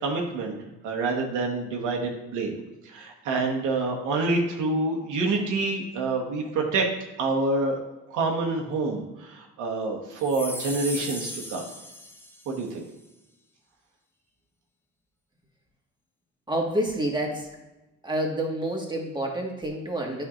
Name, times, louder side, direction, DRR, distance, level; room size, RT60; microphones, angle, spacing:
voice 1, 0.0-0.6 0.8-2.5 2.8-6.8 7.2-7.8 8.1-11.6 12.5-12.8, right 3 dB, 90° right, 0 dB, 1.2 m, -27 dB
sound 1, 10.2-12.7, left 1 dB, 10° left, 1.0 m, -37 dB
voice 2, 16.5-17.5 18.0-20.2, right 1 dB, 15° right, 0 dB, 1.5 m, -28 dB
8.9 x 5.6 x 2.5 m, 1.0 s
cardioid pair, 90°, 30 cm